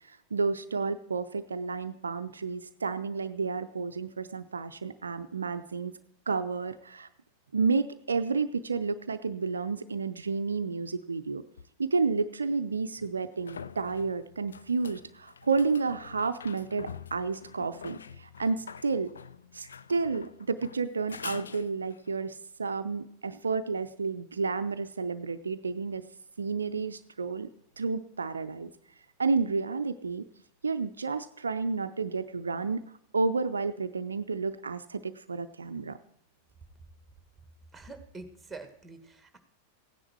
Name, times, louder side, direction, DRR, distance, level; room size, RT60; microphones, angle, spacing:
voice 1, 0.1-5.9 6.3-7.1 7.5-11.4 11.8-19.1 19.5-26.0 26.4-27.5 27.8-28.7 29.2-30.3 30.6-32.8 33.1-36.0, right 4 dB, 75° right, 10 dB, 0.5 m, -31 dB
sound 1, 11.6-11.7 13.0-22.1 25.5-25.6, left 6 dB, 70° left, 0.5 m, -46 dB
voice 2, 37.7-39.4, right 3 dB, 10° right, 8 dB, 1.7 m, -45 dB
16.0 x 9.9 x 4.5 m, 0.77 s
figure-of-eight pair, 90°, 0 cm